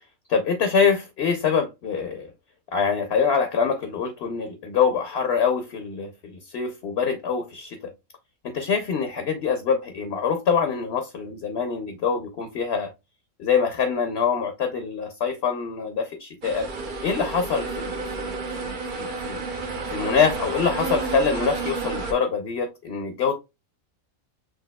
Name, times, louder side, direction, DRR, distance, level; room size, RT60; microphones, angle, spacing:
voice 1, 0.3-2.3 2.7-7.9 8.4-12.9 13.4-16.7 17.0-18.3 18.6-19.4 19.9-23.3, left 6 dB, 55° left, 0.9 m, -25 dB
sound 1, 16.4-22.1, right 3 dB, 45° right, 0.8 m, -31 dB
6.1 x 2.7 x 2.2 m
omnidirectional pair, 1.4 m